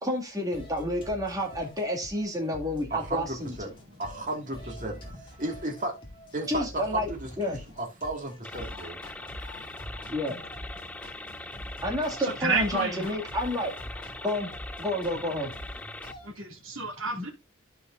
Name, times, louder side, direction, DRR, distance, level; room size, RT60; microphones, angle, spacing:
voice 1, 0.0-3.5 6.5-7.1 7.4-7.6 10.1-10.3 11.8-13.7 14.2-14.5 14.8-15.5, equal, 15° right, 2.2 m, -30 dB
sound 1, 0.5-16.3, equal, 25° left, 2.3 m, -45 dB
voice 2, 2.9-3.7 4.0-5.9 6.3-9.0, right 2 dB, 40° right, 2.1 m, -34 dB
sound 2, 8.4-16.1, left 2 dB, 5° left, 0.4 m, -42 dB
voice 3, 9.1-9.7 10.3-10.4 11.7-11.8 12.2-13.2 16.2-17.3, right 2 dB, 75° right, 2.6 m, -31 dB
13.5 x 4.9 x 2.6 m
head